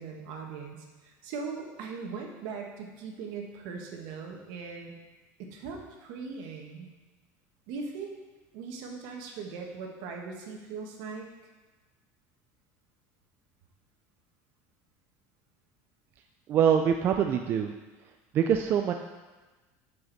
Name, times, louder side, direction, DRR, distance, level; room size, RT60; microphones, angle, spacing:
voice 1, 0.0-4.9 5.4-6.9 7.7-8.1 8.5-11.3, right 5 dB, 65° right, 1 dB, 1.3 m, -40 dB
voice 2, 16.5-17.7 18.3-18.9, right 8 dB, 30° right, 5 dB, 0.3 m, -24 dB
7.6 x 6.2 x 4.0 m, 1.2 s
cardioid pair, 165°, 7 cm